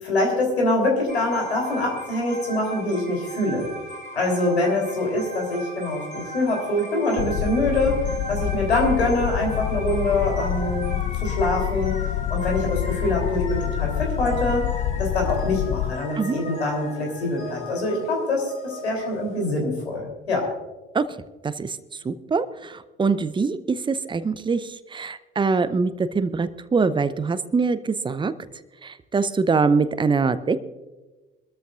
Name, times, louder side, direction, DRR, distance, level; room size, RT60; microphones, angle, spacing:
voice 1, 0.0-3.7 4.1-8.0 8.3-12.0 12.3-14.7 15.0-20.5, left 2 dB, 80° left, 1 dB, 3.6 m, -24 dB
sound 1, 1.1-19.4, equal, 25° left, 3.4 m, -37 dB
sound 2, 7.2-15.9, left 12 dB, 45° left, 0.5 m, -27 dB
voice 2, 21.4-21.8 22.0-28.3 28.8-30.6, right 4 dB, 15° right, 14 dB, 0.7 m, -23 dB
23.5 x 13.5 x 2.5 m, 1.2 s
figure-of-eight pair, 60°, 32 cm